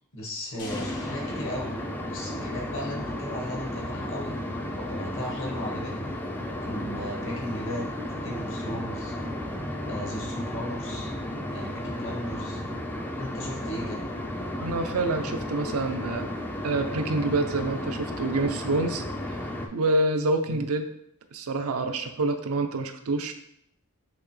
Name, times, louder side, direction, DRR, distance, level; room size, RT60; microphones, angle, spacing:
voice 1, 0.1-1.8 2.1-6.1 6.6-7.9 8.2-9.2 9.9-11.1 11.5-12.6 13.2-14.1 20.5-20.6, left 1 dB, 60° left, 0 dB, 1.2 m, -36 dB
sound 1, 0.6-2.9, left 2 dB, 85° left, 1.2 m, -42 dB
sound 2, 0.7-19.7, left 1 dB, 10° left, 0.4 m, -33 dB
voice 2, 14.6-16.3 16.6-19.1 19.7-20.9 21.3-23.3, right 2 dB, 70° right, 7 dB, 0.5 m, -27 dB
5.8 x 2.8 x 3.1 m, 0.74 s
head